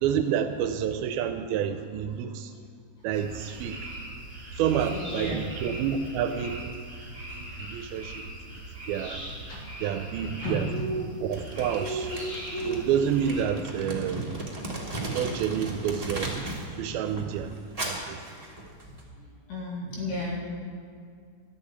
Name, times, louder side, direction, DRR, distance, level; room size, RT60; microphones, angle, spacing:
voice 1, 0.0-2.5 3.0-3.8 4.6-6.7 7.4-8.2 8.9-9.2 9.8-10.7 11.2-12.1 12.6-14.4 15.1-16.4 16.8-17.5 17.8-18.2, right 8 dB, 80° right, 8 dB, 2.3 m, -29 dB
sound 1, 3.1-13.4, right 1 dB, 15° right, 3.3 m, -37 dB
voice 2, 4.9-5.4 9.2-10.8 19.5-20.4, left 1 dB, 60° left, -3 dB, 3.6 m, -34 dB
Crumpling crinkling, 11.3-16.7 17.0-19.0, right 2 dB, 50° right, 0.4 m, -36 dB
12.0 x 7.2 x 9.4 m, 2.2 s
omnidirectional pair, 4.5 m